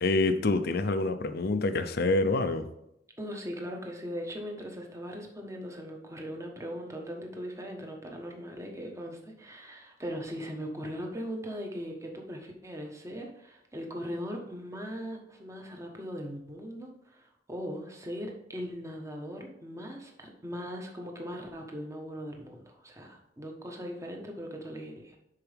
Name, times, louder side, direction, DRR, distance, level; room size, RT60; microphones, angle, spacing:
voice 1, 0.0-2.7, left 2 dB, 60° left, 0.6 m, -26 dB
voice 2, 3.2-25.2, equal, 15° right, 1.3 m, -39 dB
10.5 x 4.6 x 3.5 m
head